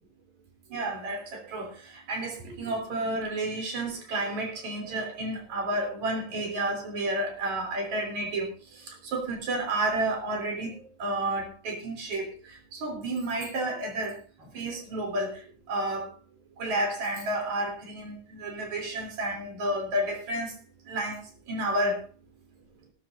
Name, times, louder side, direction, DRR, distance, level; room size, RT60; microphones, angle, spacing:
voice 1, 0.7-14.2 14.5-15.4 15.7-16.1 16.6-20.5 20.9-22.0, right 1 dB, 75° right, 2 dB, 4.7 m, -31 dB
17.5 x 13.5 x 2.6 m, 0.37 s
omnidirectional pair, 3.4 m